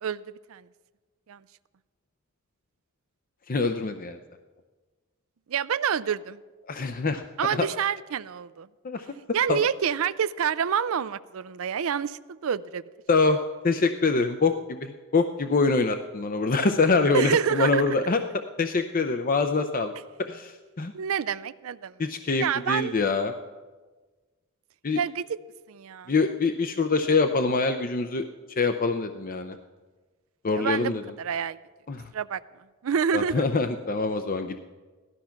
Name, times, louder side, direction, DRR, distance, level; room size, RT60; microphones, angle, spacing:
voice 1, 0.0-0.7 1.3-1.4 5.5-6.4 7.4-8.7 9.3-12.8 17.1-18.0 20.9-22.0 22.4-22.9 24.9-25.4 25.7-26.1 30.6-31.6 32.1-32.4 32.8-33.4, right 8 dB, 70° right, 15 dB, 0.4 m, -28 dB
voice 2, 3.5-4.2 6.7-7.2 7.6-7.7 8.8-9.1 9.5-9.6 13.1-13.4 13.6-18.2 18.6-19.9 20.3-20.9 22.0-23.3 24.8-25.0 26.1-28.2 28.6-29.5 30.4-31.0 31.9-32.1 33.1-34.6, left 3 dB, 40° left, 7 dB, 0.6 m, -24 dB
17.0 x 12.5 x 5.8 m, 1.3 s
head